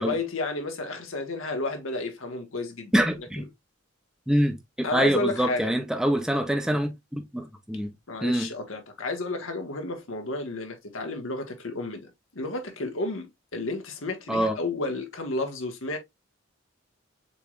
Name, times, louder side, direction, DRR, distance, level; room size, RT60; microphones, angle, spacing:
voice 1, 0.0-2.9 3.4-3.5 4.8-5.7 8.1-16.0, left 2 dB, 80° left, 1.2 m, -32 dB
voice 2, 2.9-3.5 4.3-7.9 8.2-8.5 14.3-14.6, equal, 5° right, 0.7 m, -25 dB
6.9 x 3.2 x 2.3 m
head